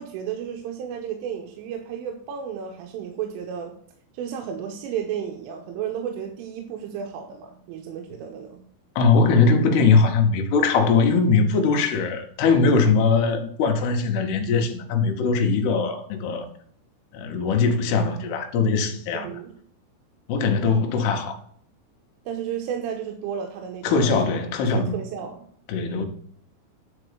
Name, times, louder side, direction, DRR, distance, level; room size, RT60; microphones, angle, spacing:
voice 1, 0.0-3.8 4.1-8.6 19.1-19.6 22.3-24.2 24.6-25.5, right 8 dB, 85° right, 3.3 m, -33 dB
voice 2, 9.0-16.5 17.1-19.3 20.3-21.4 23.8-25.0 25.7-26.1, left 4 dB, 70° left, 2.7 m, -21 dB
10.5 x 4.6 x 6.7 m
omnidirectional pair, 5.8 m